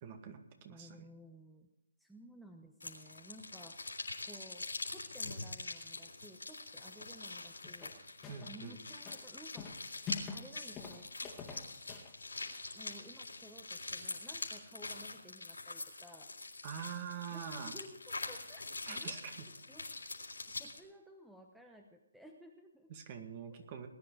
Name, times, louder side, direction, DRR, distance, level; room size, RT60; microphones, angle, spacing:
voice 1, 0.0-0.9 8.3-8.8 16.6-17.8 18.9-19.4 22.9-23.9, right 8 dB, 35° right, 6 dB, 2.0 m, -45 dB
voice 2, 0.7-1.7 2.0-4.0 4.2-7.9 8.5-9.8 10.3-11.7 12.7-16.3 17.3-19.2 19.7-19.9 20.5-22.9, equal, ahead, 3 dB, 0.9 m, -56 dB
sound 1, 2.8-20.8, left 3 dB, 90° left, 3.5 m, -44 dB
sound 2, 7.6-8.6 8.9-10.5 10.7-12.1, left 5 dB, 15° left, 2.1 m, -46 dB
19.5 x 10.0 x 4.8 m, 0.93 s
figure-of-eight pair, 145°, 0 cm